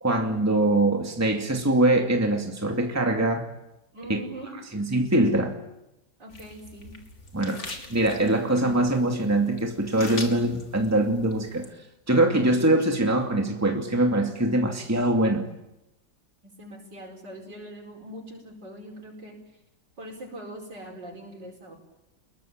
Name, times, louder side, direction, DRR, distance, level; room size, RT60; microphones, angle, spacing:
voice 1, 0.0-3.5 4.1-4.2 4.7-5.6 7.3-7.6 7.9-11.7 12.1-15.5, right 1 dB, 10° right, 2.5 m, -23 dB
voice 2, 3.9-4.5 6.2-7.0 7.7-7.8 16.4-19.3 20.0-21.8, equal, 70° right, 5.6 m, -42 dB
Peel and crush the orange, 6.3-11.7, left 2 dB, 40° left, 3.2 m, -42 dB
29.5 x 22.0 x 8.9 m
omnidirectional pair, 2.0 m